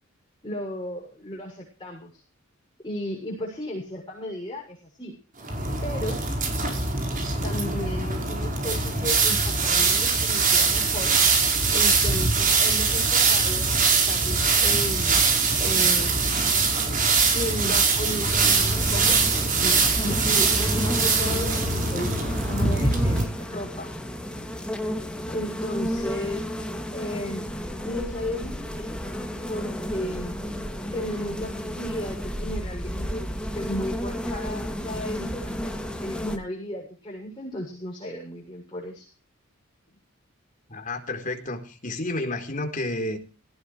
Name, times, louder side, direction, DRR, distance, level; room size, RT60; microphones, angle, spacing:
voice 1, 0.4-2.2 2.8-5.2 5.8-6.2 7.4-11.2 11.7-15.3 15.6-16.2 17.3-23.9 25.3-26.5 26.9-27.6 27.8-29.0 29.5-30.4 30.9-39.1, left 1 dB, 20° left, -3 dB, 7.2 m, -34 dB
sound 1, 5.4-23.2, right 4 dB, 40° right, 5.2 m, -22 dB
sound 2, 18.2-36.4, equal, 5° left, 2.7 m, -33 dB
voice 2, 40.7-43.2, left 2 dB, 40° left, 4 dB, 4.2 m, -31 dB
18.5 x 18.5 x 3.4 m, 0.35 s
head